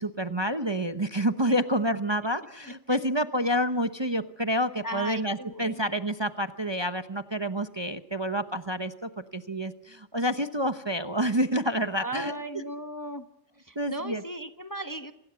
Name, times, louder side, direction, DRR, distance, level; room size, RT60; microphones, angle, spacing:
voice 1, 0.0-12.4 13.8-14.2, equal, 25° right, 9 dB, 0.9 m, -28 dB
voice 2, 2.6-3.0 4.8-5.8 12.0-13.3 13.6-15.1, right 1 dB, 15° left, 8 dB, 0.9 m, -37 dB
27.0 x 21.0 x 7.0 m, 0.85 s
omnidirectional pair, 1.3 m